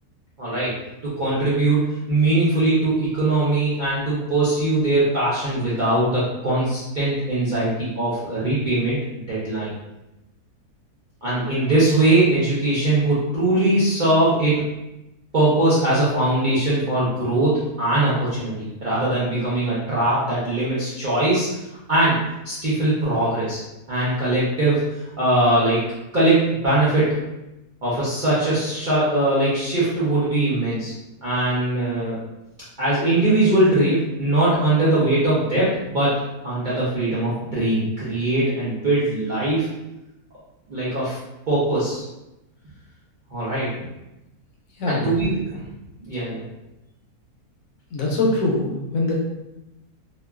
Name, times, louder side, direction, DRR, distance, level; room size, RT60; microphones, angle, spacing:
voice 1, 0.4-0.7 1.0-9.7 11.2-14.6 15.3-22.2 22.4-23.6 23.9-25.8 26.1-27.1 27.8-30.9 31.2-32.2 32.8-36.1 36.4-39.7 40.7-41.2 41.5-42.0 43.3-43.7 44.9-45.6 46.0-46.4, right 2 dB, 55° right, -10 dB, 0.5 m, -21 dB
voice 2, 47.9-49.1, left 2 dB, 70° left, -3 dB, 0.9 m, -22 dB
2.9 x 2.2 x 2.2 m, 0.95 s
omnidirectional pair, 1.6 m